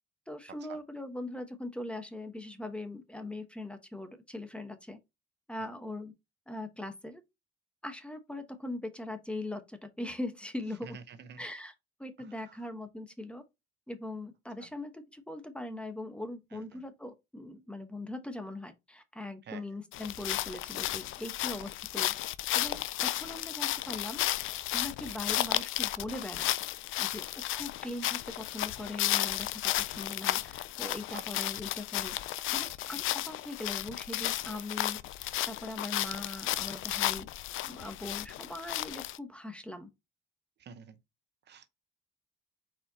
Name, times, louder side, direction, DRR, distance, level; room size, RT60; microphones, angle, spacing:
voice 1, 0.3-5.0 5.5-6.1 6.5-7.2 7.8-11.0 11.4-11.7 12.0-13.4 13.9-22.1 22.5-24.3 24.7-26.5 27.0-32.2 32.5-35.0 35.5-37.3 37.6-39.9, left 1 dB, 5° left, 1.0 m, -41 dB
voice 2, 10.8-11.4 12.2-12.7 14.6-14.7 16.5-16.8 19.4-19.6 25.1-25.2 31.1-31.5 32.9-33.0 40.6-41.0 41.5-41.7, right 6 dB, 60° right, 0.8 m, -49 dB
sound 1, 19.9-39.2, left 15 dB, 80° left, 0.4 m, -33 dB
4.4 x 4.3 x 2.8 m
cardioid pair, 90°, 20 cm